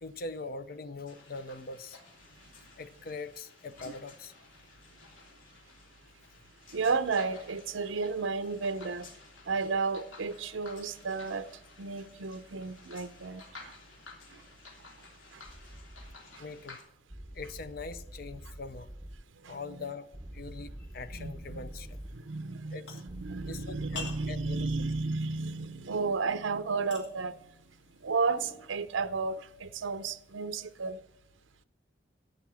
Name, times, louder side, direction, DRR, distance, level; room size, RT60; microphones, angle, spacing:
voice 1, 0.0-2.0 2.8-4.3 16.4-16.8 17.4-18.9 19.5-20.1 20.3-22.0 22.7-23.0 23.5-24.6 30.8-30.9, left 3 dB, 50° left, 0.5 m, -42 dB
sound 1, 1.1-16.8, left 3 dB, 90° left, 3.0 m, -53 dB
voice 2, 6.7-9.1 9.5-11.5 11.8-13.7 14.3-14.4 15.3-15.4 16.4-16.5 19.4-19.6 21.2-21.6 22.1-27.4 28.0-31.0, right 4 dB, 85° right, 0.6 m, -33 dB
sound 2, 15.4-16.1 17.1-19.2 20.1-22.2 23.1-25.0, right 1 dB, 10° right, 0.7 m, -45 dB
sound 3, 21.4-30.9, left 4 dB, 75° left, 2.4 m, -51 dB
11.5 x 8.3 x 6.1 m
head